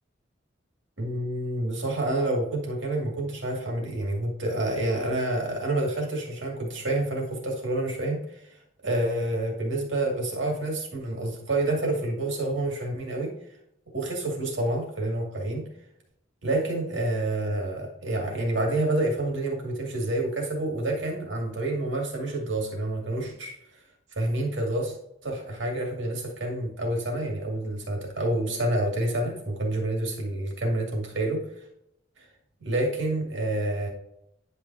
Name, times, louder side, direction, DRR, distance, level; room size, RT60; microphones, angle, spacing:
voice 1, 1.0-8.4 8.8-13.3 13.9-15.6 16.4-23.5 24.1-24.9 25.2-31.4 32.6-33.9, right 1 dB, 75° right, -1 dB, 2.4 m, -28 dB
10.0 x 5.5 x 2.8 m, 0.78 s
head